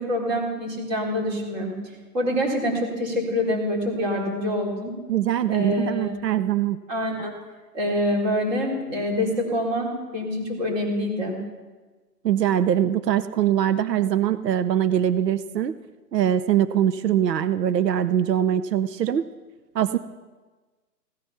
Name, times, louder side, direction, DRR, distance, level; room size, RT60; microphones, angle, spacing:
voice 1, 0.0-1.7 2.1-4.9 5.5-6.2 6.9-7.3 7.7-11.4, left 1 dB, 25° right, -1 dB, 4.1 m, -26 dB
voice 2, 5.1-6.8 12.2-15.7 16.1-19.2 19.7-20.0, right 10 dB, 75° right, 14 dB, 0.9 m, -22 dB
17.0 x 13.0 x 5.9 m, 1.3 s
hypercardioid pair, 165°, 50 cm